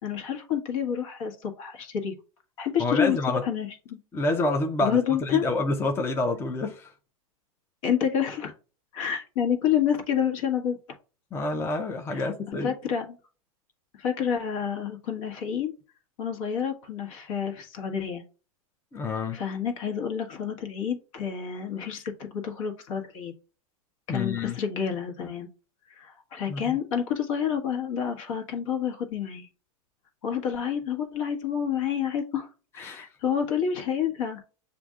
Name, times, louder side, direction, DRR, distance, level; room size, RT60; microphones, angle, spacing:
voice 1, 0.0-2.1 2.6-4.0 4.8-5.4 7.8-8.5 8.9-10.8 12.1-12.3 12.6-13.2 14.0-15.7 16.2-18.2 19.3-23.3 24.1-25.5 25.9-29.5 30.2-32.5 32.7-34.4, left 8 dB, 60° left, 1.3 m, -29 dB
voice 2, 2.8-3.4 4.1-6.9 11.3-12.7 18.9-19.4 24.1-24.6 26.5-26.8 32.8-33.0, left 2 dB, 15° left, 0.5 m, -28 dB
7.0 x 2.6 x 2.3 m
hypercardioid pair, 125°, 18 cm